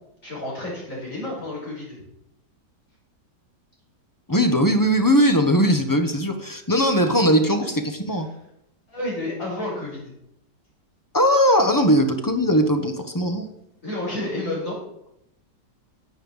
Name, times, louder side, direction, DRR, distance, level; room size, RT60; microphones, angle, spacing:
voice 1, 0.2-2.0 8.9-10.1 13.8-14.8, left 1 dB, 45° left, -5 dB, 5.7 m, -30 dB
voice 2, 4.3-8.3 11.1-13.5, equal, 15° left, 7 dB, 1.0 m, -19 dB
9.8 x 8.9 x 7.3 m, 0.80 s
omnidirectional pair, 1.9 m